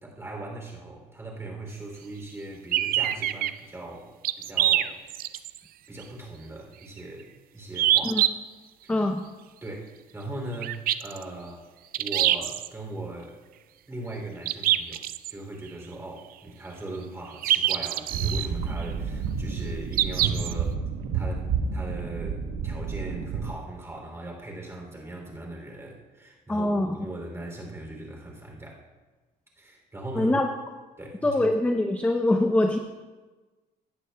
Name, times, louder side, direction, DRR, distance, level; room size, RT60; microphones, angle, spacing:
voice 1, 0.0-5.0 5.9-8.2 8.8-8.9 9.6-11.6 12.0-13.4 13.9-15.0 15.3-20.8 21.1-28.8 29.6-30.4 31.0-31.4, right 2 dB, 15° right, 0 dB, 2.9 m, -39 dB
sound 1, 2.7-3.5 4.2-5.6 6.0-6.1 7.8-8.3 10.6-11.2 11.9-12.7 14.5-15.3 17.4-18.5 19.9-20.5, right 13 dB, 60° right, 0.4 m, -24 dB
voice 2, 8.9-9.2 26.5-27.0 30.2-30.5 31.2-32.8, left 1 dB, 10° left, 5 dB, 0.6 m, -23 dB
sound 2, 18.1-23.5, right 5 dB, 80° right, 1.0 m, -30 dB
17.5 x 11.0 x 2.2 m, 1.3 s
cardioid pair, 110°, 17 cm